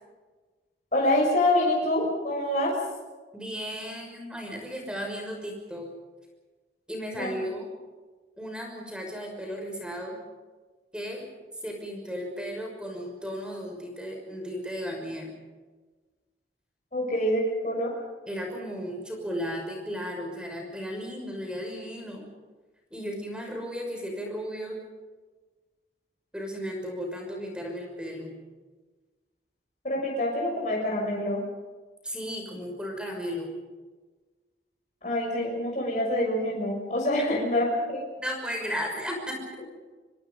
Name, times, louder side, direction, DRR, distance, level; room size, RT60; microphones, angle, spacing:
voice 1, 0.9-2.7 7.1-7.3 16.9-17.9 29.8-31.4 35.0-38.0, left 1 dB, 45° left, -2 dB, 6.7 m, -26 dB
voice 2, 3.3-5.9 6.9-7.7 8.4-10.2 10.9-11.3 11.6-15.3 18.3-22.3 22.9-24.8 26.3-28.3 32.0-33.5 38.2-39.4, equal, 5° right, 1 dB, 6.0 m, -35 dB
25.5 x 25.5 x 5.5 m, 1.3 s
head